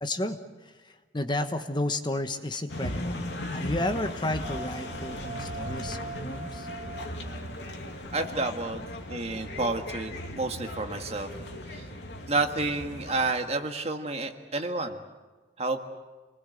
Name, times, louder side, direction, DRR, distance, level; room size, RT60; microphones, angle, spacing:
voice 1, 0.0-3.2 3.5-6.7, left 1 dB, 25° left, 8 dB, 1.2 m, -32 dB
sound 1, 2.7-13.3, left 1 dB, 80° left, 2.5 m, -37 dB
sound 2, 4.4-9.4, right 3 dB, 90° right, 2.6 m, -43 dB
voice 2, 8.1-11.3 11.7-11.9 12.3-15.0 15.6-15.8, right 3 dB, 35° right, 5 dB, 1.8 m, -30 dB
29.0 x 20.5 x 7.9 m, 1.3 s
head